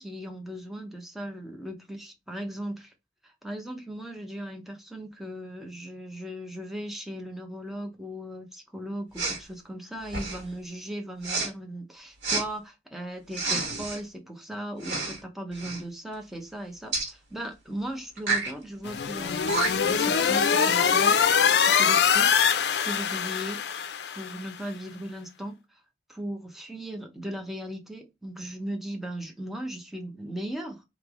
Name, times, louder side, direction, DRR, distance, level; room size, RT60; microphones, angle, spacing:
voice 1, 0.0-2.9 3.2-19.4 19.7-22.4 22.8-23.8 24.1-25.8 26.1-30.8, right 1 dB, ahead, 0.7 m, -37 dB
Respiratory sounds, 9.1-9.4 10.1-10.5 11.2-11.5 12.2-12.4 13.3-14.0 14.8-15.2 15.5-15.8 16.9-17.1 18.2-18.5 19.2-19.3 19.5-19.9, right 3 dB, 85° right, 1.9 m, -29 dB
sound 1, 18.8-24.4, left 7 dB, 65° left, 0.4 m, -23 dB
3.3 x 3.0 x 3.6 m
head